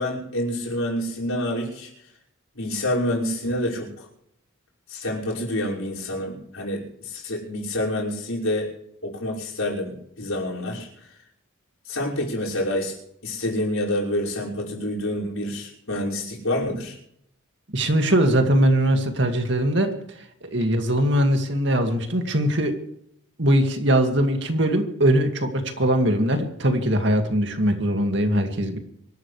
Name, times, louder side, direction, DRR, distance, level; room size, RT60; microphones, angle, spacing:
voice 1, 0.0-1.9 2.5-4.1 4.9-8.7 9.0-10.9 11.9-12.9 13.2-17.0, left 1 dB, 90° left, -3 dB, 5.8 m, -27 dB
voice 2, 17.7-19.9 20.4-22.7 23.4-28.8, right 1 dB, 55° right, 5 dB, 2.2 m, -21 dB
25.0 x 13.0 x 3.3 m, 0.74 s
head